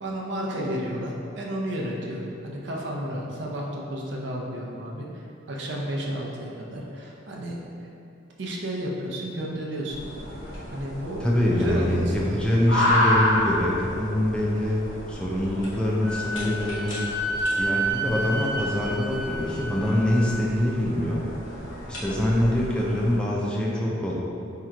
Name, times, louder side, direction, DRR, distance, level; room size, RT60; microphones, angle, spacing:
voice 1, 0.0-7.9 8.4-10.1 10.7-11.3 11.5-12.4, equal, 65° right, -3 dB, 0.5 m, -32 dB
sound 1, 9.9-23.2, left 1 dB, 80° left, 0.8 m, -31 dB
voice 2, 11.2-14.8 15.1-17.0 17.6-21.3 21.9-24.1, left 1 dB, 5° left, -5 dB, 0.3 m, -24 dB
Wind instrument woodwind instrument, 16.0-20.4, right 1 dB, 35° left, 1.1 m, -30 dB
4.4 x 2.8 x 2.5 m, 2.6 s
head